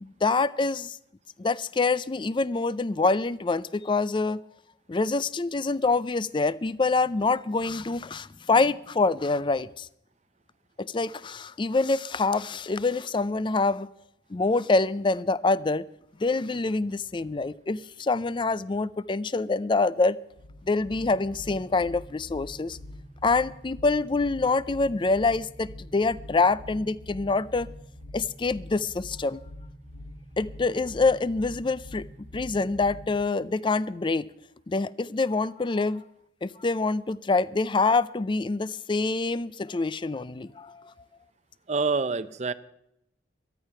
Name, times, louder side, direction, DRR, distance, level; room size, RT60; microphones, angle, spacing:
voice 1, 0.0-1.0 1.4-4.4 4.9-9.9 10.8-13.9 14.3-15.9 16.2-20.2 20.7-22.8 23.2-27.7 28.1-29.4 30.4-32.0 32.3-34.3 34.7-36.0 36.4-40.9, left 3 dB, 25° left, 19 dB, 0.4 m, -26 dB
sound 1, 20.3-33.2, left 1 dB, 85° left, 2.8 m, -44 dB
voice 2, 41.7-42.5, right 4 dB, 40° right, 14 dB, 0.6 m, -26 dB
13.5 x 13.0 x 5.7 m, 0.78 s
head